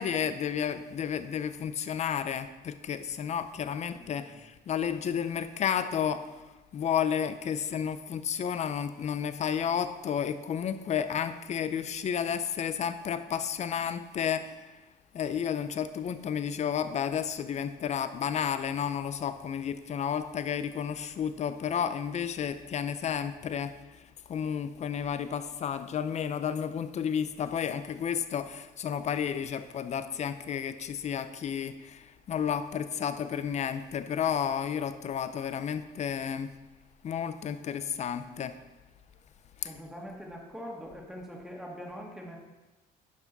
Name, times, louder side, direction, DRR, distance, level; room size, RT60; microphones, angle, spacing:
voice 1, 0.0-6.3 6.7-14.8 15.1-23.7 24.3-36.5 37.0-38.5 39.6-39.7, left 8 dB, 40° left, 12 dB, 0.6 m, -32 dB
voice 2, 3.9-4.4 39.6-42.4, equal, 5° right, -1 dB, 1.7 m, -43 dB
10.5 x 5.9 x 4.0 m, 1.1 s
cardioid pair, 110°, 17 cm